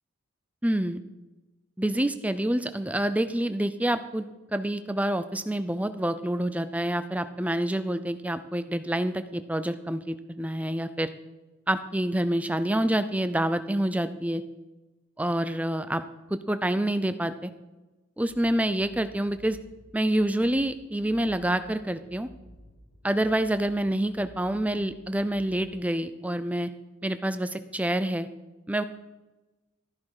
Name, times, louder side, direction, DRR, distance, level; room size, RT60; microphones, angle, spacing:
voice 1, 0.6-1.0 1.8-4.3 4.5-11.1 11.7-14.4 15.2-16.0 16.3-17.5 18.2-19.6 19.9-22.3 23.0-26.7 27.0-28.3 28.7-28.8, right 1 dB, 5° right, 11 dB, 0.5 m, -27 dB
sound 1, 18.3-25.7, equal, 45° left, 1.9 m, -53 dB
13.0 x 11.0 x 4.9 m, 1.1 s
head